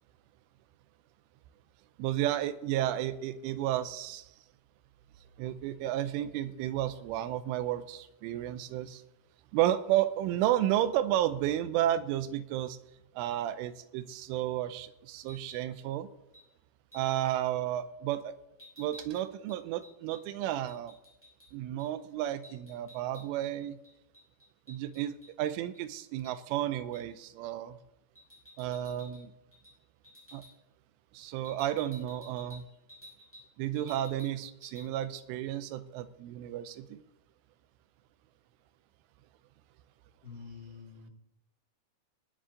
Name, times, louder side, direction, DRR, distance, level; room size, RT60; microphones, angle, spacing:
voice 1, 2.0-4.3 5.4-9.0 9.5-12.8 13.2-16.1 16.9-18.3 18.8-20.9 21.5-23.8 24.7-27.8 28.6-29.3 30.3-30.4 31.1-32.6 33.6-37.0, right 12 dB, 80° right, 12 dB, 3.1 m, -32 dB
sound 1, 15.2-15.7 16.3-16.5 16.9-17.2 18.6-21.5 21.8-21.9 22.2-23.5 23.8-25.8 26.2-26.4 26.9-27.1 28.1-29.2 29.5-29.8 30.0-30.5 31.4-33.5 33.7-34.3 34.6-34.9, left 1 dB, ahead, 5.2 m, -54 dB
voice 2, 40.2-41.1, left 5 dB, 80° left, -1 dB, 0.9 m, -47 dB
19.5 x 10.0 x 3.8 m, 0.88 s
omnidirectional pair, 5.8 m